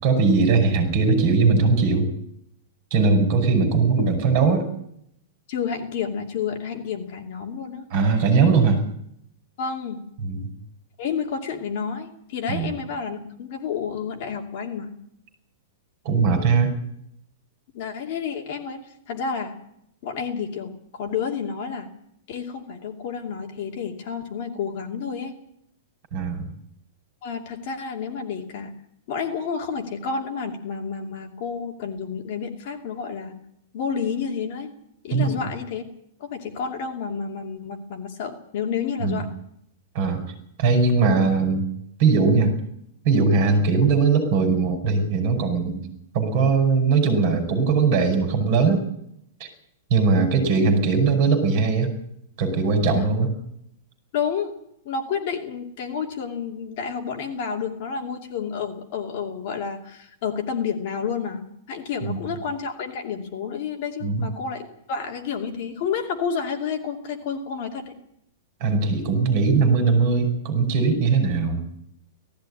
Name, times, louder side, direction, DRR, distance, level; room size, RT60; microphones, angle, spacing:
voice 1, 0.0-2.1 2.9-4.6 7.9-8.8 10.2-10.4 12.5-12.7 16.0-16.7 26.1-26.5 35.1-35.3 39.0-39.2 39.9-40.2 40.6-41.6 42.0-42.5 43.0-45.8 46.1-48.8 49.9-51.9 52.4-53.3 62.0-62.2 64.0-64.3 68.6-71.6, right 4 dB, 35° right, 7 dB, 5.5 m, -20 dB
voice 2, 5.5-7.9 9.6-10.0 11.0-14.9 17.7-19.5 20.0-21.9 22.3-25.3 27.2-28.7 29.1-33.4 33.7-34.7 35.0-35.8 36.2-39.3 43.5-43.6 52.9-53.1 54.1-54.5 54.8-67.9, left 6 dB, 35° left, 2 dB, 2.7 m, -30 dB
18.0 x 15.0 x 9.9 m, 0.74 s
supercardioid pair, 180°, 0 cm